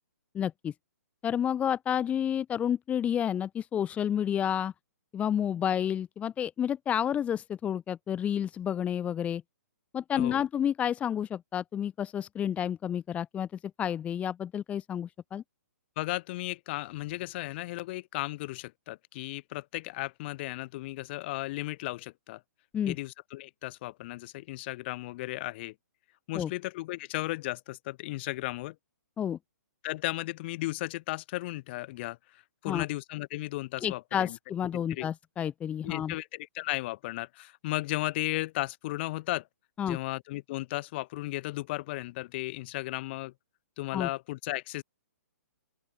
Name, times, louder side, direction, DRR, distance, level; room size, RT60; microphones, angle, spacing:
voice 1, 0.3-0.7 1.2-4.7 5.1-9.4 9.9-13.5 13.8-15.4 22.7-23.0 26.3-26.5 29.2-29.4 32.7-32.8 33.8-36.1 39.8-40.0 43.9-44.1, left 9 dB, 15° left, 1.0 m, -30 dB
voice 2, 16.0-22.4 22.9-25.7 26.3-28.7 29.8-32.2 32.6-34.4 34.9-35.1 35.8-39.4 39.8-43.3 43.8-44.8, left 19 dB, 40° left, 2.9 m, -35 dB
open air
hypercardioid pair, 145°, 9 cm